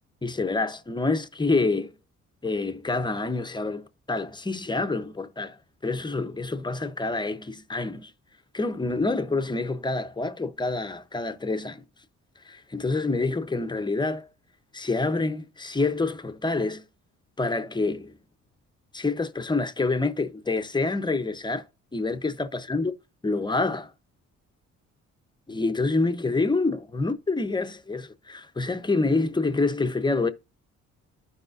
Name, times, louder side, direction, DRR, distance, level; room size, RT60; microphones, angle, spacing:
voice 1, 0.2-1.9 2.4-8.1 8.5-11.8 12.4-14.3 14.7-16.8 17.4-18.2 18.9-21.7 21.9-22.9 23.2-23.9 25.5-30.3, left 3 dB, 15° left, 0.7 m, -27 dB
12.0 x 4.9 x 2.5 m
cardioid pair, 90°, 30 cm